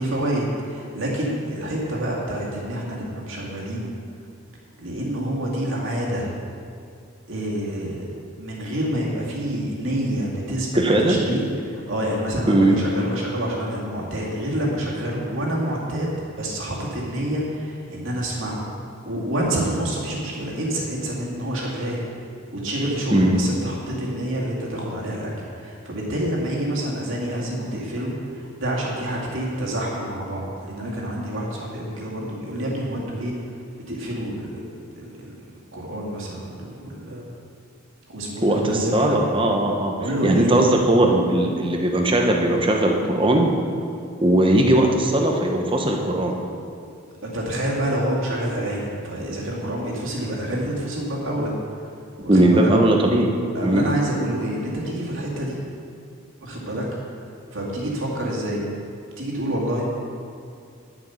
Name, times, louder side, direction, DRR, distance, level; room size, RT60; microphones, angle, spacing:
voice 1, 0.0-3.9 4.8-6.3 7.3-8.1 8.4-18.7 19.0-22.0 22.5-33.3 33.9-34.6 34.9-35.3 35.7-37.3 38.1-39.3 40.0-40.6 47.2-51.5 52.2-52.7 53.5-55.6 56.4-56.8 57.5-58.6 59.2-59.8, right 1 dB, 65° right, -4 dB, 2.3 m, -27 dB
voice 2, 10.7-11.2 12.5-12.8 23.1-23.3 38.4-39.9 40.2-43.5 44.2-46.4 52.3-53.3 53.6-53.8, right 1 dB, 25° right, 2 dB, 0.9 m, -19 dB
10.5 x 7.6 x 5.7 m, 2.4 s
head